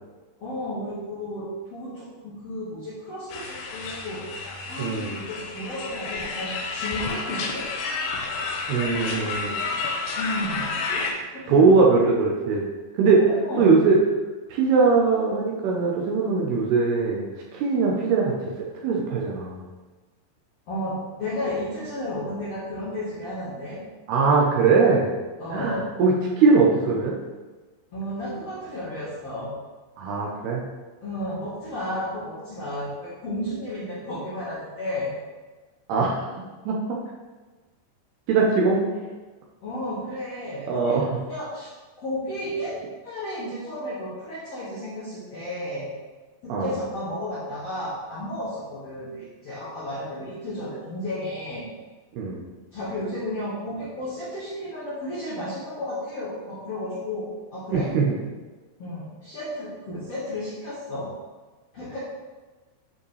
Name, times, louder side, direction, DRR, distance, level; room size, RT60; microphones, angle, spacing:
voice 1, 0.4-7.7 10.2-10.8 11.3-11.7 13.2-13.7 20.7-23.8 25.4-25.8 27.9-29.5 31.0-35.1 39.6-41.7 42.0-45.9 46.4-51.6 52.7-57.9 58.8-61.1 61.7-62.0, left 1 dB, 50° left, -10 dB, 1.9 m, -33 dB
sound 1, 3.3-11.1, left 4 dB, 80° left, 2.8 m, -30 dB
voice 2, 4.8-5.2 8.7-9.6 11.5-12.6 13.0-13.3 13.6-14.0 14.5-17.3 17.5-19.6 24.1-25.1 25.5-27.2 30.0-30.6 35.9-37.0 38.3-38.8 40.7-41.2 46.5-46.7 52.1-52.4 57.7-58.2, right 4 dB, 75° right, -2 dB, 2.6 m, -21 dB
9.5 x 5.1 x 3.3 m, 1.3 s
omnidirectional pair, 5.1 m